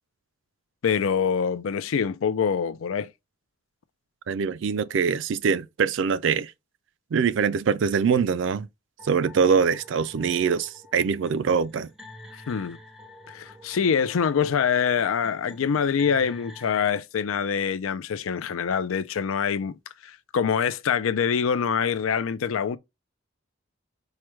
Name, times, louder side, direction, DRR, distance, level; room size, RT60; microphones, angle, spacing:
voice 1, 0.8-3.1 12.3-12.8 13.3-22.8, left 7 dB, 90° left, 0.4 m, -25 dB
voice 2, 4.3-6.5 7.1-8.7 9.0-11.9, right 6 dB, 70° right, 0.3 m, -23 dB
sound 1, 9.0-17.0, left 1 dB, ahead, 0.5 m, -48 dB
4.7 x 2.2 x 3.0 m
head